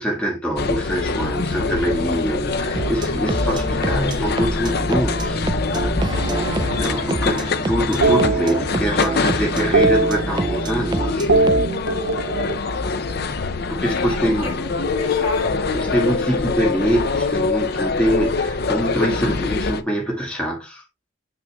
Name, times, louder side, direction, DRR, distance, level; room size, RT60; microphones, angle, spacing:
voice 1, 0.0-5.5 6.8-11.3 13.7-14.6 15.7-20.8, equal, 5° left, 1.7 m, -24 dB
sound 1, 0.6-19.8, left 4 dB, 50° left, 0.5 m, -24 dB
sound 2, 2.7-11.7, right 2 dB, 20° right, 0.3 m, -27 dB
voice 2, 6.0-6.4 6.8-7.1 13.0-13.5 13.9-16.6, left 2 dB, 85° left, 2.3 m, -34 dB
sound 3, 6.1-7.4 8.0-9.2 9.4-10.9 11.2-13.5 14.7-16.5, right 3 dB, 75° right, 0.8 m, -23 dB
8.8 x 5.9 x 2.3 m
head